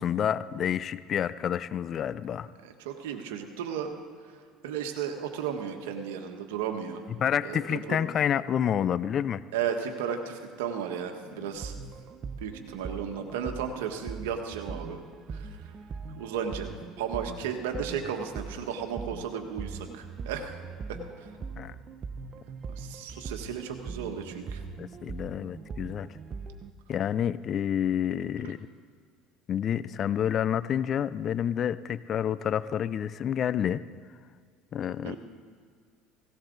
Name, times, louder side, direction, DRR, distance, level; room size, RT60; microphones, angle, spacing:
voice 1, 0.0-2.5 7.1-9.4 11.4-11.5 21.6-21.7 24.8-26.1 26.9-28.6 29.5-33.8 34.7-35.2, left 9 dB, 45° left, 17 dB, 0.4 m, -29 dB
voice 2, 2.6-3.9 4.6-7.0 7.4-8.0 9.5-11.7 12.4-15.0 15.3-15.7 16.1-20.5 20.9-21.3 22.7-24.6 28.4-28.5 35.0-35.2, right 8 dB, 85° right, 5 dB, 1.5 m, -34 dB
sound 1, 11.5-26.7, right 4 dB, 40° right, 0.8 m, -41 dB
17.5 x 17.5 x 4.0 m, 2.1 s
supercardioid pair, 95°, 0 cm